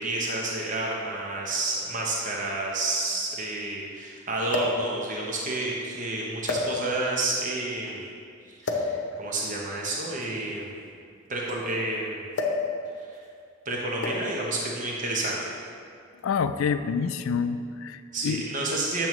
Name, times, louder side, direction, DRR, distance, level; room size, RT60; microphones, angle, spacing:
voice 1, 0.0-8.1 8.5-10.8 11.3-12.2 13.0-13.2 13.6-15.5 18.1-19.1, right 2 dB, 40° right, -3 dB, 0.9 m, -30 dB
sound 1, 0.8-0.9 2.0-2.1 2.3-2.4 4.5-4.9 5.7-5.9 6.4-7.1 8.6-9.0 10.1-11.7 12.3-12.7 13.0-13.3 14.0-14.4 15.4-15.6, left 3 dB, 60° left, 0.8 m, -30 dB
voice 2, 16.2-18.4, left 6 dB, 85° left, 10 dB, 0.3 m, -27 dB
8.9 x 6.9 x 3.1 m, 2.3 s
head